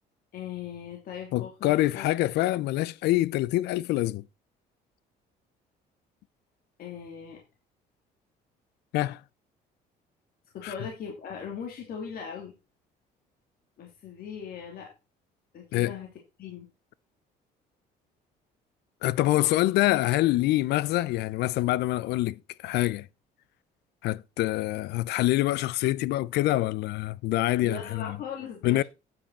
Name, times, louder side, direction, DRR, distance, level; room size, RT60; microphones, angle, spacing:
voice 1, 0.3-2.1 6.8-7.4 10.5-12.5 13.8-14.9 15.5-16.1 16.4-16.7 27.6-28.8, left 7 dB, 60° left, 2.6 m, -39 dB
voice 2, 1.3-4.2 8.9-9.2 10.6-10.7 15.7-15.9 19.0-23.1 24.0-28.2 28.6-28.8, left 16 dB, 80° left, 0.5 m, -25 dB
9.6 x 7.3 x 4.2 m
cardioid pair, 110°, 17 cm